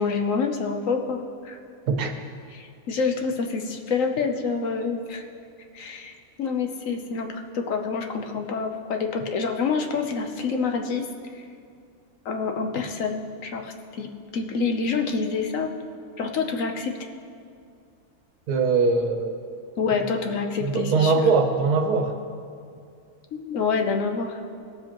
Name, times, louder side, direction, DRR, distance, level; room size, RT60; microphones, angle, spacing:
voice 1, 0.0-1.6 2.5-5.2 5.7-11.0 11.3-11.4 12.2-14.1 14.3-15.7 16.2-16.9 19.8-21.2 23.3-24.4, left 5 dB, 65° left, 4 dB, 1.1 m, -27 dB
voice 2, 18.5-19.3 20.6-22.1, right 4 dB, 90° right, 5 dB, 1.4 m, -21 dB
18.5 x 7.4 x 3.0 m, 2.3 s
omnidirectional pair, 1.6 m